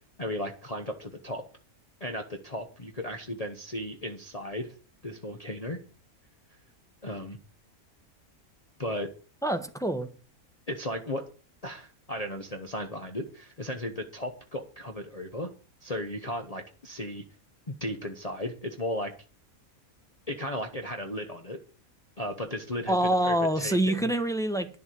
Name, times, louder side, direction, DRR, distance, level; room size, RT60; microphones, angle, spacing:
voice 1, 0.2-1.4 2.0-4.7 5.0-5.8 7.0-7.4 8.8-9.1 10.7-11.2 11.6-15.5 15.8-17.2 17.7-19.1 20.3-21.6 22.2-24.1, left 1 dB, 30° left, 1.1 m, -35 dB
voice 2, 9.4-10.1 22.9-24.7, right 1 dB, 5° left, 1.1 m, -26 dB
11.0 x 7.1 x 7.7 m
omnidirectional pair, 1.5 m